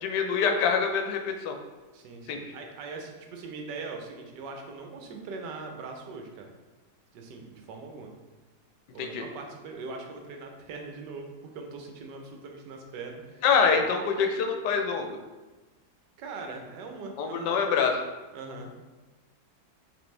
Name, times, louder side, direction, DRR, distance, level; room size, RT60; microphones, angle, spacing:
voice 1, 0.0-1.6 2.3-2.4 9.0-9.2 13.4-15.2 17.2-18.0, left 5 dB, 80° left, 4 dB, 1.2 m, -25 dB
voice 2, 1.9-6.5 7.1-8.1 8.9-13.4 13.7-13.8 16.2-17.7 18.3-18.8, right 3 dB, 85° right, 2 dB, 1.3 m, -41 dB
5.2 x 3.1 x 3.2 m, 1.2 s
omnidirectional pair, 1.8 m